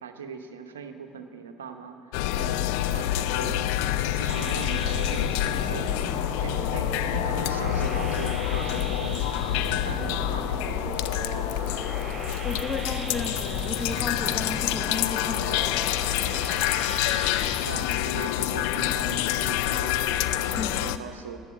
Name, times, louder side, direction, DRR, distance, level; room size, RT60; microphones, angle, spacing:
voice 1, 0.0-2.0 2.4-5.9 6.4-11.5 17.6-21.4, right 5 dB, 90° right, 7 dB, 0.9 m, -39 dB
sound 1, 2.1-21.0, left 13 dB, 75° left, 0.4 m, -27 dB
sound 2, 4.3-17.6, right 2 dB, 25° right, 3.6 m, -38 dB
voice 2, 12.4-15.9 20.5-20.9, left 4 dB, 25° left, 3 dB, 1.2 m, -34 dB
10.5 x 8.6 x 10.0 m, 2.5 s
hypercardioid pair, 70°, 0 cm